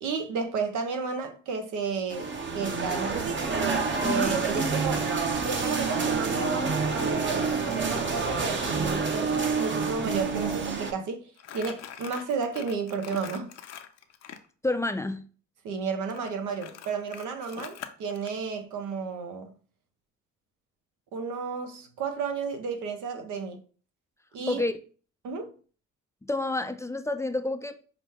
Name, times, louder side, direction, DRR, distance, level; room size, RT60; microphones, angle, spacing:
voice 1, 0.0-3.5 4.0-5.1 5.4-11.3 11.5-13.5 15.6-19.5 21.1-23.6 24.3-24.6 25.2-25.5, right 5 dB, 85° right, 0.9 m, -32 dB
sound 1, 2.1-10.9, right 4 dB, 40° right, 0.8 m, -28 dB
voice 2, 4.0-4.3 14.6-15.3 24.5-24.7 26.2-27.8, left 2 dB, 10° left, 0.4 m, -29 dB
Crumpling crinkling, 11.4-14.4 16.1-18.3, left 9 dB, 60° left, 0.6 m, -43 dB
6.0 x 2.2 x 3.5 m
cardioid pair, 90°, 30 cm